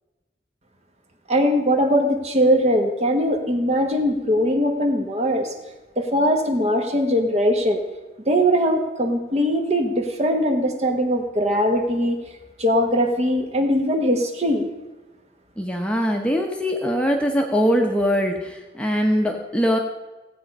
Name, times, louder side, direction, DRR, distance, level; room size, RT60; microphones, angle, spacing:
voice 1, 1.3-5.5 6.0-7.8 8.3-12.2 12.6-14.7, equal, 35° right, 4 dB, 1.3 m, -21 dB
voice 2, 15.6-19.8, equal, 5° left, 2 dB, 1.0 m, -22 dB
16.0 x 8.6 x 5.4 m, 1.2 s
head